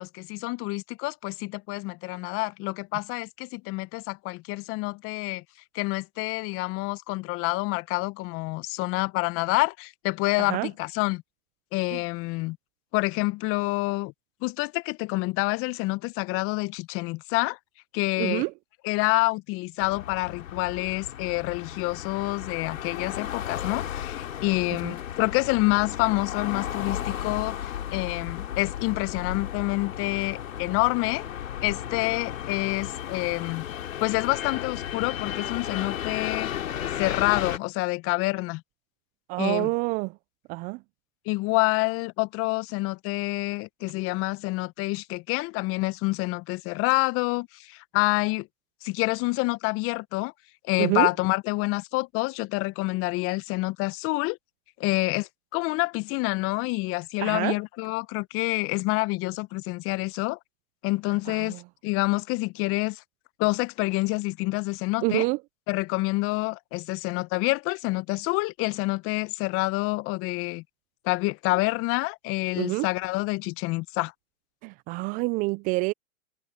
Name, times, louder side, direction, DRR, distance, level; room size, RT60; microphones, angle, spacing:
voice 1, 0.0-5.4 5.7-11.2 11.7-12.6 12.9-14.1 14.4-17.6 17.9-18.4 18.8-31.2 31.6-33.6 34.0-36.5 37.0-38.6 39.4-39.7 41.3-48.5 48.8-50.3 50.7-54.4 54.8-60.4 60.8-63.0 63.4-65.3 65.7-70.6 71.0-74.1, left 23 dB, 30° left, 1.1 m, -27 dB
voice 2, 10.4-10.7 11.9-12.0 18.2-18.5 24.8-24.9 39.3-40.2 40.5-40.8 50.8-51.1 57.2-57.6 61.3-61.6 65.0-65.4 72.6-72.9 74.6-75.9, right 25 dB, 20° right, 0.4 m, -27 dB
sound 1, 19.8-37.6, left 10 dB, 70° left, 3.0 m, -34 dB
hypercardioid pair, 115°, 41 cm